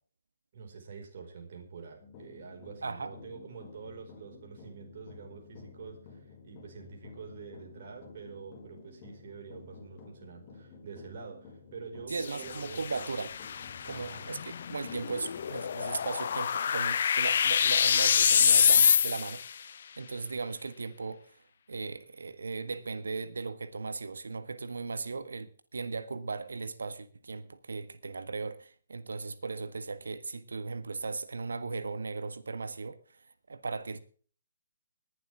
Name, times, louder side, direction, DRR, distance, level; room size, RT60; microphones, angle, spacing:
voice 1, 0.5-13.1 13.9-14.3, right 5 dB, 50° right, 4.9 m, -47 dB
sound 1, 2.0-16.3, left 5 dB, 35° left, 5.9 m, -52 dB
voice 2, 2.8-3.1 12.1-13.3 13.8-21.4 21.7-34.0, right 4 dB, 70° right, 1.5 m, -37 dB
sound 2, 12.1-19.5, left 7 dB, 55° left, 0.6 m, -26 dB
20.0 x 11.5 x 3.5 m
figure-of-eight pair, 135°, 0 cm